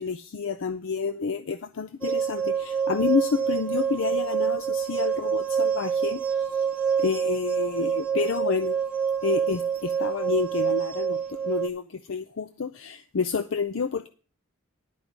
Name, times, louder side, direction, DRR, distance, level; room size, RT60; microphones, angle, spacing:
voice 1, 0.0-6.7 7.0-8.8 9.2-14.1, left 5 dB, 65° left, 0.5 m, -29 dB
sound 1, 2.0-11.7, right 7 dB, 5° right, 0.9 m, -27 dB
11.0 x 5.3 x 7.3 m
head